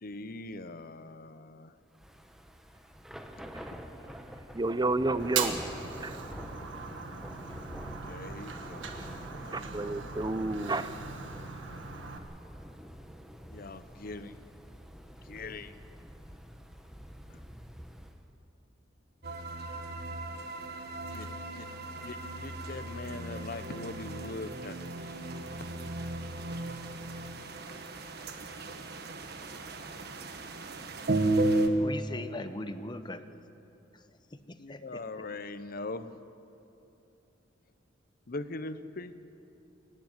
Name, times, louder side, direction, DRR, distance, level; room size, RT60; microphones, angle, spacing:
voice 1, 0.0-1.7 8.0-10.0 13.5-14.4 15.3-15.8 21.1-21.7 22.0-24.8 34.6-36.1 38.3-39.1, left 2 dB, 50° left, 0.8 m, -41 dB
Thunder / Rain, 1.9-18.2, equal, 5° right, 1.1 m, -47 dB
voice 2, 4.5-5.7 6.0-6.2 9.5-11.0, right 2 dB, 20° right, 0.6 m, -31 dB
Fire, 5.2-12.2, right 6 dB, 80° right, 1.7 m, -39 dB
sound 1, 19.2-31.7, right 2 dB, 60° right, 1.5 m, -35 dB
voice 3, 31.8-33.4 34.3-35.2, left 1 dB, 25° left, 0.9 m, -40 dB
24.0 x 12.0 x 9.7 m
head